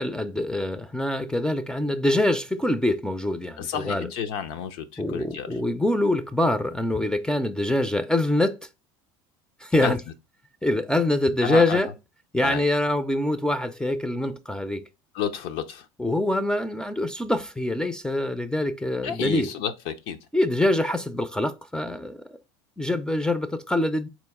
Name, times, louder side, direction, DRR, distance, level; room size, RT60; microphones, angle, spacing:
voice 1, 0.0-4.1 5.0-8.7 9.6-10.0 10.6-11.9 12.3-14.8 16.0-19.5 20.3-22.2 22.8-24.1, left 1 dB, 5° left, 0.4 m, -24 dB
voice 2, 3.6-5.5 9.8-9.9 11.4-11.8 12.4-12.6 15.1-15.8 19.0-20.2, left 8 dB, 75° left, 0.6 m, -30 dB
4.0 x 3.0 x 3.4 m
supercardioid pair, 95°, 14 cm